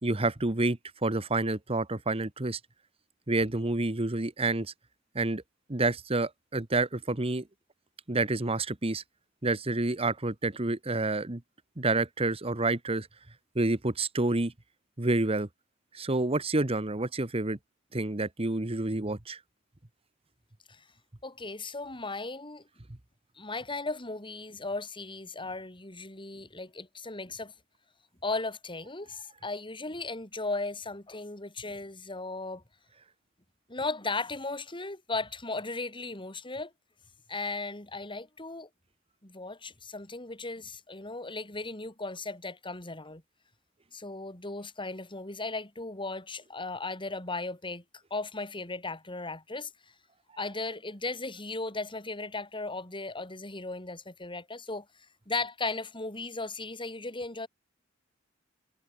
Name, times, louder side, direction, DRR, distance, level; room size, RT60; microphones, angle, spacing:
voice 1, 0.0-2.6 3.3-4.7 5.1-5.4 5.7-7.4 8.1-9.0 9.4-11.4 11.8-13.1 13.5-14.5 15.0-15.5 15.9-17.6 17.9-19.4, right 2 dB, 30° right, 1.3 m, -28 dB
voice 2, 21.2-22.6 23.4-27.5 28.2-32.6 33.7-36.7 37.3-38.7 39.2-43.2 43.9-47.8 48.1-49.7 50.4-54.9 55.3-57.5, left 3 dB, 25° left, 5.5 m, -36 dB
head